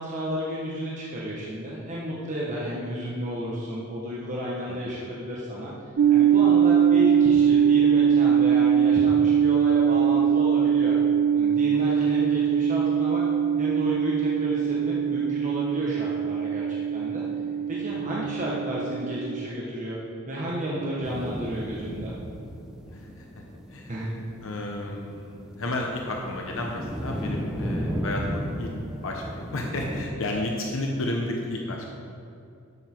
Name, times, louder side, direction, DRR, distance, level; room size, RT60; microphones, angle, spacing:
voice 1, 0.0-5.7 6.1-10.9 11.3-13.2 13.6-17.2 17.7-20.0 20.3-22.1 23.9-24.1, equal, 35° right, -5 dB, 1.3 m, -32 dB
voice 2, 4.7-5.1 11.7-11.9 17.9-18.3 22.9-23.4 23.7-24.0 24.4-28.7 29.0-32.0, left 1 dB, 65° left, 0 dB, 1.0 m, -32 dB
sound 1, 6.0-19.5, right 8 dB, 50° right, 0.3 m, -22 dB
sound 2, 21.0-30.1, equal, 5° right, 0.9 m, -34 dB
12.0 x 8.1 x 4.6 m, 2.5 s
head